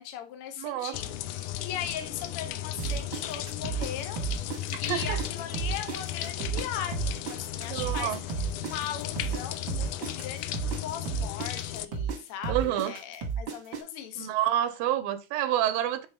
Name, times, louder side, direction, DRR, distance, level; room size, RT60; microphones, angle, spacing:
voice 1, 0.0-4.3 4.8-8.2 8.5-14.3, left 9 dB, 70° left, 1.4 m, -39 dB
voice 2, 0.6-1.0 4.7-5.2 7.7-8.2 12.5-13.0 14.2-16.1, right 12 dB, 85° right, 2.3 m, -28 dB
sound 1, 0.9-11.9, left 13 dB, 85° left, 1.8 m, -36 dB
sound 2, 2.8-5.3 5.5-9.4 9.7-13.8, right 6 dB, 60° right, 1.3 m, -32 dB
sound 3, 6.2-10.3, left 3 dB, 50° left, 2.4 m, -53 dB
8.0 x 4.1 x 3.4 m
omnidirectional pair, 4.2 m